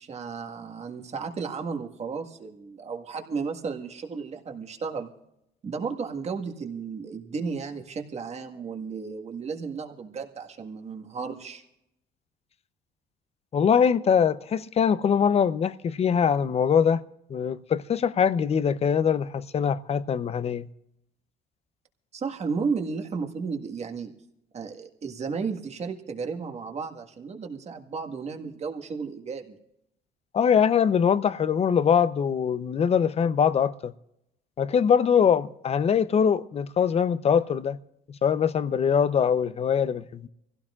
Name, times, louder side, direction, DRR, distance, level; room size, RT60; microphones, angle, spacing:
voice 1, 0.0-5.1 5.6-11.6 22.1-24.1 24.5-29.6, right 5 dB, 40° right, 1.7 m, -33 dB
voice 2, 13.5-17.0 17.3-20.7 30.3-33.9 34.6-37.8 38.1-40.3, left 7 dB, 40° left, 0.7 m, -23 dB
24.0 x 16.0 x 2.5 m
cardioid pair, 110°, 17 cm